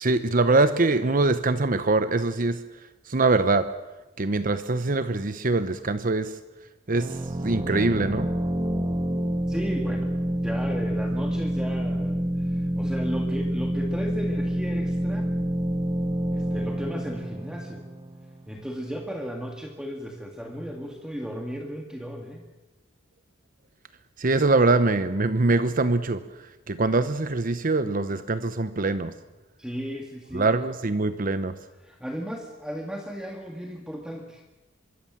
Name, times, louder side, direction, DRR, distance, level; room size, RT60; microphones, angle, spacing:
voice 1, 0.0-2.6 3.0-3.7 4.2-6.4 6.9-8.3 24.2-29.1 30.3-31.5, right 3 dB, 45° right, 12 dB, 0.9 m, -23 dB
sound 1, 7.0-18.5, equal, 25° right, 2.2 m, -28 dB
voice 2, 9.5-15.3 16.3-17.8 18.5-22.5 29.6-30.5 31.8-34.4, equal, 5° right, 2 dB, 1.9 m, -35 dB
25.0 x 22.5 x 7.4 m, 1.1 s
head